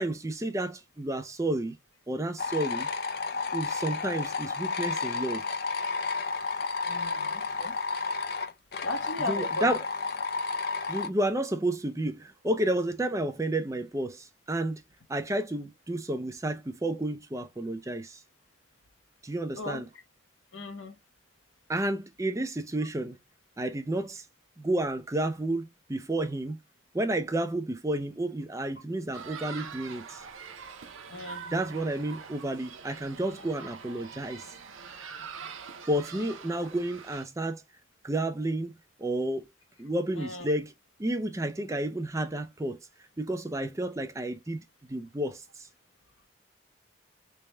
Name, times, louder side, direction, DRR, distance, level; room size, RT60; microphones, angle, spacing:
voice 1, 0.0-1.8 2.1-2.9 3.5-5.4 9.3-9.8 10.9-14.8 15.1-18.2 19.2-19.9 21.7-23.2 23.6-24.2 24.6-26.6 26.9-30.2 31.5-34.5 35.9-37.6 38.0-39.5 39.8-40.7 41.0-42.8 43.2-44.6 44.9-45.4, right 1 dB, 15° right, 0.5 m, -31 dB
sound 1, 2.4-11.1, left 4 dB, 50° left, 0.5 m, -32 dB
voice 2, 6.8-7.7 8.8-9.7 19.6-19.8 20.5-21.0 31.1-31.6 40.1-40.5, left 1 dB, 75° left, 1.0 m, -37 dB
sound 2, 29.1-37.3, right 6 dB, 90° right, 0.6 m, -44 dB
3.4 x 2.2 x 4.2 m
head